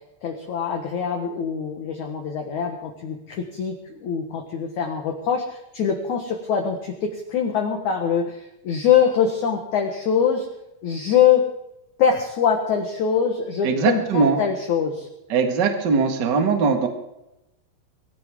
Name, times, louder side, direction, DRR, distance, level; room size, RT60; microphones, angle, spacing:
voice 1, 0.2-10.5 10.8-11.4 12.0-15.1, left 7 dB, 60° left, 3 dB, 2.0 m, -23 dB
voice 2, 13.6-14.4 15.3-16.9, right 5 dB, 60° right, 5 dB, 1.1 m, -20 dB
23.0 x 14.5 x 3.7 m, 0.89 s
omnidirectional pair, 5.2 m